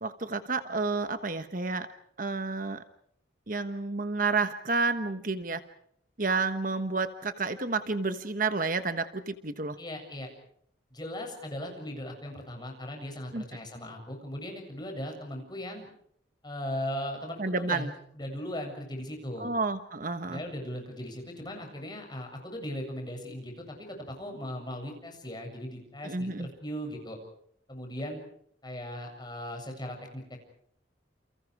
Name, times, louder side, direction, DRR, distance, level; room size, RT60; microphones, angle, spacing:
voice 1, 0.0-1.9 2.2-2.8 3.5-5.6 6.2-9.8 13.3-13.4 17.4-17.9 19.4-20.4 26.0-26.5, right 3 dB, 45° right, 10 dB, 1.3 m, -30 dB
voice 2, 9.8-10.3 10.9-15.9 16.4-19.5 20.2-27.2 27.7-28.2 28.6-30.4, equal, 25° left, 3 dB, 7.5 m, -38 dB
29.5 x 29.0 x 4.8 m, 0.66 s
head